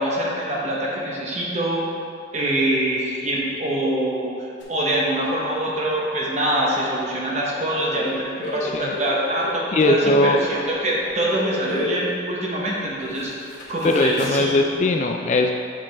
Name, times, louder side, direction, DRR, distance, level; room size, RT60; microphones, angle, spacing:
voice 1, 0.0-1.9 2.3-14.6, right 1 dB, 35° right, -4 dB, 1.1 m, -24 dB
sound 1, 4.6-4.7 7.9-12.1 12.8-12.9 13.1-14.6, left 2 dB, 65° left, 1.0 m, -32 dB
voice 2, 8.6-8.9 9.7-10.4 13.8-15.5, left 2 dB, 35° left, 4 dB, 0.3 m, -19 dB
7.4 x 4.9 x 3.5 m, 2.4 s
head